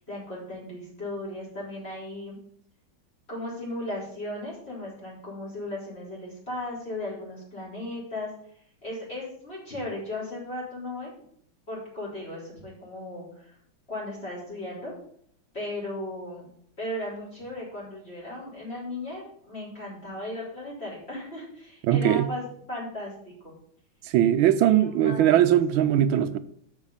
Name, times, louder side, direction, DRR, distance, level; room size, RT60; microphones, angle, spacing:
voice 1, 0.0-2.4 3.3-8.3 8.8-11.1 11.7-13.5 13.9-14.9 15.5-16.5 16.8-22.4 22.7-23.1 23.4-23.5 24.7-25.5 26.1-26.3, left 1 dB, 30° left, 4.3 m, -36 dB
voice 2, 21.8-22.3 24.0-26.4, right 11 dB, 80° right, 1.4 m, -20 dB
6.5 x 6.2 x 6.9 m
omnidirectional pair, 2.3 m